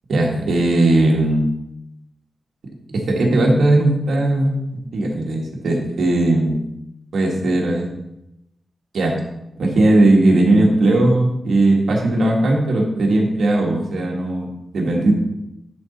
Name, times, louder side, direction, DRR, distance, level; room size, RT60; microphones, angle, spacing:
voice 1, 0.1-1.5 2.9-4.6 4.9-6.6 7.1-7.9 8.9-9.2 9.6-14.5 14.7-15.1, right 2 dB, 80° right, 0 dB, 1.8 m, -17 dB
10.5 x 4.2 x 4.2 m, 0.86 s
wide cardioid pair, 115°, 0 cm